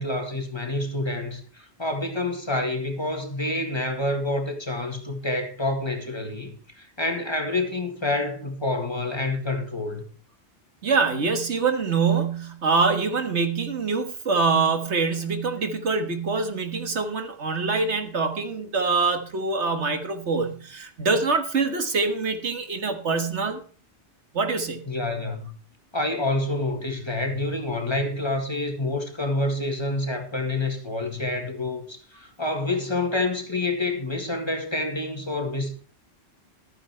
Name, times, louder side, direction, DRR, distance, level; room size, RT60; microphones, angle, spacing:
voice 1, 0.0-10.0 24.9-25.5 25.9-35.7, left 2 dB, 25° left, 1.9 m, -28 dB
voice 2, 10.8-23.6 24.3-24.8, right 4 dB, 85° right, 1.9 m, -24 dB
13.5 x 9.3 x 4.5 m
omnidirectional pair, 1.1 m